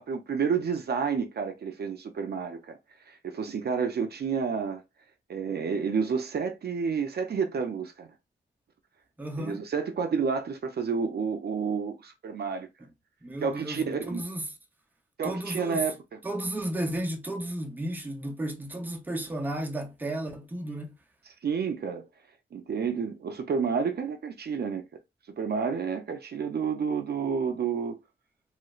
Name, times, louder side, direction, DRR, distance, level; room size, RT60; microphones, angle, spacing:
voice 1, 0.0-2.8 3.1-4.8 5.3-8.1 9.4-12.7 13.4-14.2 15.2-16.2 21.4-22.1 22.5-24.8 25.4-28.0, right 6 dB, 55° right, 0.5 m, -30 dB
voice 2, 9.2-9.6 13.2-14.5 15.2-15.9 16.2-20.9, right 1 dB, 10° right, 0.6 m, -33 dB
3.1 x 3.0 x 2.4 m
wide cardioid pair, 180°, 20 cm